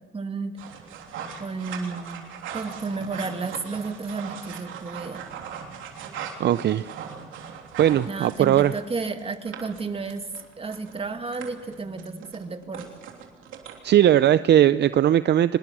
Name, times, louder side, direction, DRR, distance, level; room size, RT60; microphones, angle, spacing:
voice 1, 0.1-0.6 1.4-2.3 2.5-5.2 8.1-10.3 10.6-12.9, right 4 dB, 30° right, 7 dB, 2.1 m, -32 dB
sound 1, 0.6-14.1, right 7 dB, 85° right, 3.3 m, -39 dB
voice 2, 6.4-6.9 7.8-8.7 13.8-15.6, right 11 dB, 60° right, 14 dB, 0.6 m, -19 dB
25.0 x 21.0 x 6.1 m, 1.4 s
cardioid pair, 90°, 20 cm